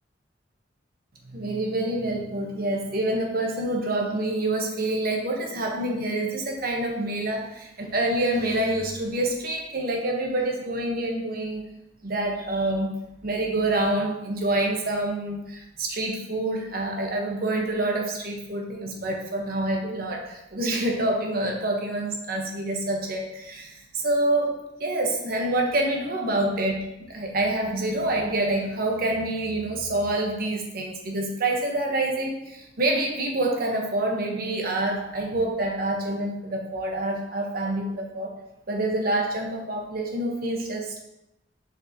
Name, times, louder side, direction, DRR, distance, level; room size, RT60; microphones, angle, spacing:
voice 1, 1.2-11.6 12.0-13.0 13.2-38.3 38.7-41.0, right 1 dB, 55° right, 1 dB, 1.1 m, -27 dB
6.3 x 5.2 x 2.9 m, 0.88 s
head